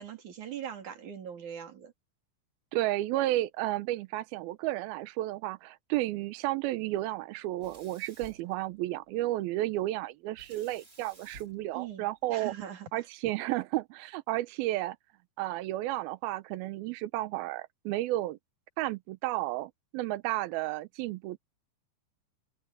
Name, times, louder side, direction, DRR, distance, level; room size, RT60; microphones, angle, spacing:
voice 1, 0.0-1.9 11.7-13.1, right 9 dB, 45° right, 3.8 m, -41 dB
voice 2, 2.7-12.5 12.9-15.0 15.4-18.4 18.8-21.4, right 16 dB, 85° right, 2.1 m, -32 dB
Sink (filling or washing), 7.6-9.2 10.3-12.6, right 1 dB, 20° right, 4.6 m, -55 dB
omnidirectional pair, 5.4 m